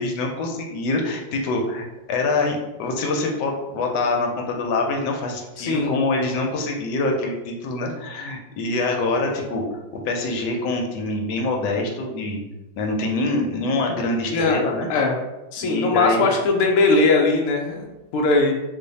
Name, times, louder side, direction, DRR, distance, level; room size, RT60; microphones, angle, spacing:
voice 1, 0.0-9.6 9.9-12.4 12.8-14.9 15.6-16.3, left 2 dB, 70° left, 1 dB, 1.1 m, -25 dB
voice 2, 5.6-5.9 14.3-14.6 14.9-15.2 15.5-18.5, left 3 dB, 90° left, 0 dB, 0.7 m, -20 dB
3.2 x 2.0 x 3.9 m, 1.0 s
omnidirectional pair, 2.2 m